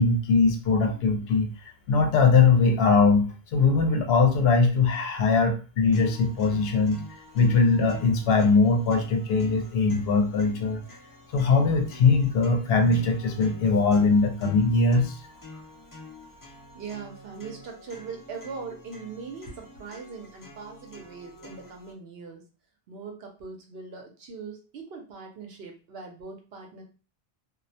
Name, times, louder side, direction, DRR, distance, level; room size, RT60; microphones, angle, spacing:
voice 1, 0.0-3.3 3.5-10.8 11.3-15.2, left 4 dB, 75° left, 5 dB, 0.8 m, -21 dB
sound 1, 5.9-21.9, left 2 dB, 30° left, 0.3 m, -47 dB
voice 2, 16.7-22.5 22.9-26.8, right 5 dB, 75° right, 2 dB, 0.9 m, -41 dB
2.3 x 2.1 x 2.6 m, 0.35 s
omnidirectional pair, 1.0 m